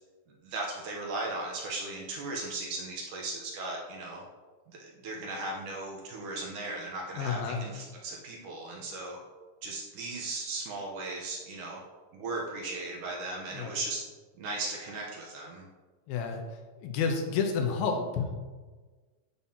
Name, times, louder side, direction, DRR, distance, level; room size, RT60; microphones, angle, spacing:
voice 1, 0.4-4.2 4.7-9.2 9.6-11.8 12.1-14.0 14.4-15.7, right 2 dB, 70° right, -2 dB, 2.1 m, -37 dB
voice 2, 7.2-7.6 13.5-13.7 16.1-18.3, left 5 dB, 80° left, 4 dB, 2.6 m, -30 dB
14.0 x 5.4 x 2.8 m, 1.3 s
omnidirectional pair, 4.4 m